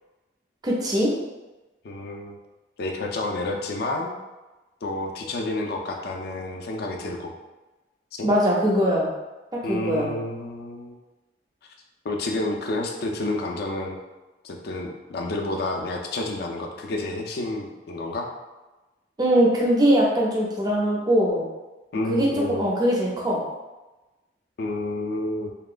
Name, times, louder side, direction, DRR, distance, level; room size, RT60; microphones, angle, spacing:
voice 1, 0.6-1.1 8.2-9.1 9.7-10.1 19.2-21.4 22.1-23.4, equal, 25° right, -3 dB, 0.4 m, -21 dB
voice 2, 1.8-2.4 2.8-4.1 4.8-7.3 8.2-8.3 9.6-11.0 12.0-14.0 14.4-18.3 21.9-22.7 24.6-25.5, left 2 dB, 60° left, 2 dB, 0.4 m, -29 dB
2.8 x 2.2 x 2.4 m, 1.1 s
head